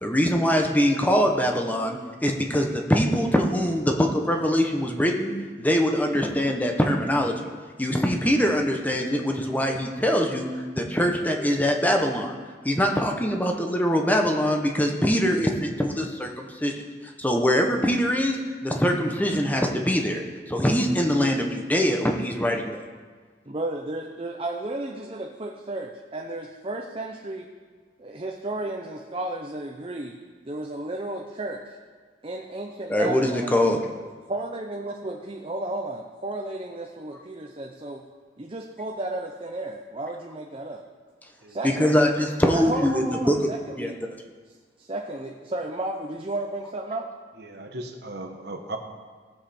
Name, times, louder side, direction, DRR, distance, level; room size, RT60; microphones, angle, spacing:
voice 1, 0.0-5.3 5.6-7.3 7.8-12.4 12.6-22.8 32.9-33.8 41.6-43.4 43.8-43.9, equal, 10° left, 2 dB, 1.0 m, -23 dB
voice 2, 23.5-27.5 28.0-30.1 30.4-31.8 32.2-33.6 34.3-38.0 38.4-40.8 41.5-42.1 42.5-43.9 44.8-47.1, right 2 dB, 30° right, 1 dB, 0.7 m, -33 dB
voice 3, 47.4-48.8, right 2 dB, 65° right, 3 dB, 1.2 m, -37 dB
18.0 x 7.5 x 4.4 m, 1.5 s
head